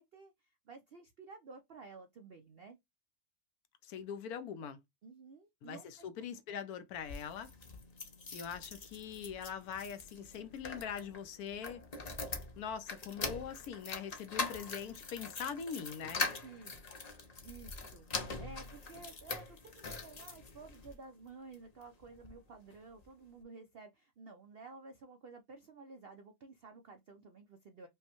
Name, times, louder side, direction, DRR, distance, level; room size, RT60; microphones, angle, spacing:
voice 1, 0.0-2.8 5.0-6.1 16.4-16.8 17.4-27.9, right 4 dB, 70° right, 0.5 m, -53 dB
voice 2, 3.8-4.8 5.6-7.5 8.3-11.9 12.6-16.2, left 7 dB, 75° left, 1.1 m, -42 dB
sound 1, 6.9-20.9 21.5-22.4 22.7-22.8 23.0-23.1, left 3 dB, 45° left, 0.5 m, -43 dB
5.2 x 2.2 x 2.9 m
omnidirectional pair, 1.7 m